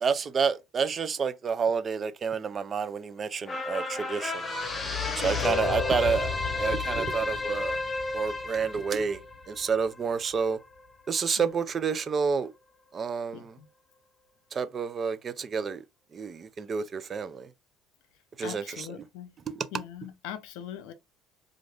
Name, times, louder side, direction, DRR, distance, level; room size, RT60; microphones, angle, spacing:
voice 1, 0.0-4.5 5.2-6.3 6.6-7.8 8.1-9.2 9.5-10.6 11.1-12.5 12.9-13.5 14.5-15.8 16.1-17.5 18.4-18.6, right 5 dB, 40° right, 0.4 m, -29 dB
sound 1, 3.5-10.1 10.5-10.6, left 3 dB, 25° left, 0.8 m, -31 dB
voice 2, 5.2-5.6 11.4-11.5 13.3-13.7 18.4-19.4 19.7-20.9, left 10 dB, 80° left, 0.5 m, -41 dB
2.5 x 2.5 x 3.3 m
supercardioid pair, 90°, 0 cm